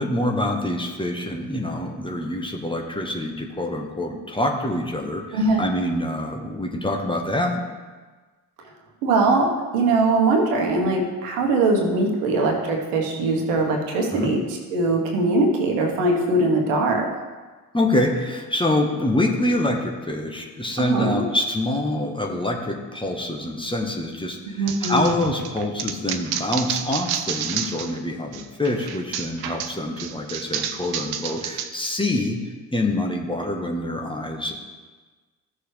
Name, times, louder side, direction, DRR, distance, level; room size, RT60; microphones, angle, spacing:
voice 1, 0.0-7.6 14.1-14.3 17.7-34.5, left 1 dB, 10° left, 1 dB, 1.4 m, -26 dB
voice 2, 5.3-5.7 9.0-14.4 14.7-17.1 20.8-21.2 24.6-25.2, right 2 dB, 70° right, 1 dB, 1.5 m, -21 dB
sound 1, 24.7-28.0 28.3-31.7, right 9 dB, 55° right, 0.9 m, -30 dB
14.5 x 6.5 x 3.4 m, 1.3 s
figure-of-eight pair, 45°, 47 cm